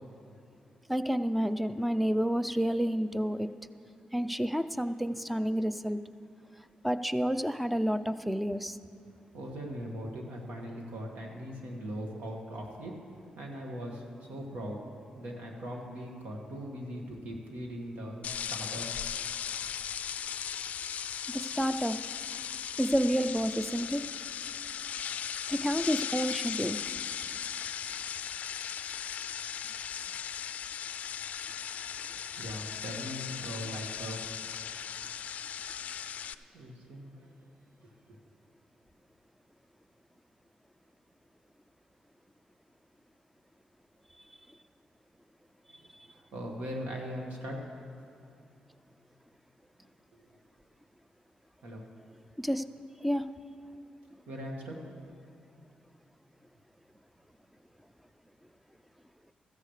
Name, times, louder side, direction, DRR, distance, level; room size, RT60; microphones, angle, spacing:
voice 1, 0.9-3.5 4.1-6.0 6.8-8.8 21.3-22.0 22.8-24.1 25.5-26.8 52.4-52.6 53.0-53.3, equal, 5° right, 11 dB, 0.4 m, -29 dB
voice 2, 9.3-12.9 13.4-14.0 14.3-14.8 15.1-18.9 32.4-34.2 36.5-37.3 37.8-38.2 45.7-45.8 46.1-47.6 51.6-51.9 54.3-54.9, equal, 85° right, 0 dB, 2.0 m, -40 dB
sound 1, 18.2-36.3, left 8 dB, 70° left, 0.3 m, -37 dB
15.5 x 14.0 x 3.3 m, 2.6 s
cardioid pair, 95°, 3 cm